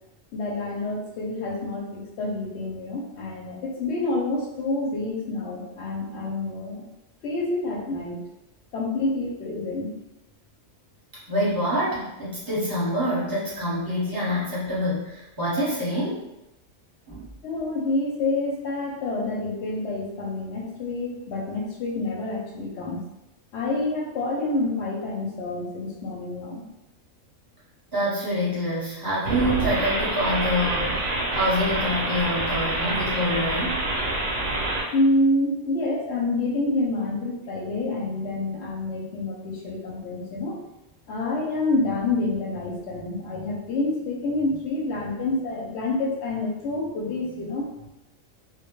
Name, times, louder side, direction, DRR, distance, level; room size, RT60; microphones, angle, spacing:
voice 1, 0.3-6.8 7.2-8.2 8.7-9.9 17.4-23.0 23.5-26.6 34.9-40.6 41.1-47.7, left 2 dB, 65° left, -1 dB, 0.8 m, -27 dB
voice 2, 11.3-16.2 17.1-17.3 27.9-33.8, equal, 20° right, -8 dB, 0.7 m, -26 dB
sound 1, 29.2-34.8, right 2 dB, 65° right, 0.7 m, -27 dB
2.2 x 2.1 x 2.9 m, 0.92 s
omnidirectional pair, 1.3 m